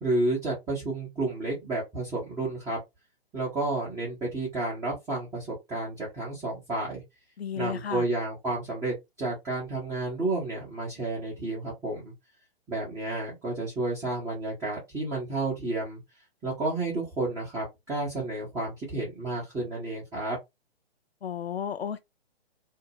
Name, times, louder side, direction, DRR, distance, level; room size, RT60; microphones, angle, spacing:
voice 1, 0.0-2.8 3.3-7.0 7.5-12.1 12.7-16.0 16.4-20.4, right 2 dB, 10° right, 0.8 m, -31 dB
voice 2, 7.4-8.1 21.2-22.0, left 8 dB, 75° left, 0.5 m, -33 dB
2.6 x 2.1 x 2.8 m
figure-of-eight pair, 125°, 32 cm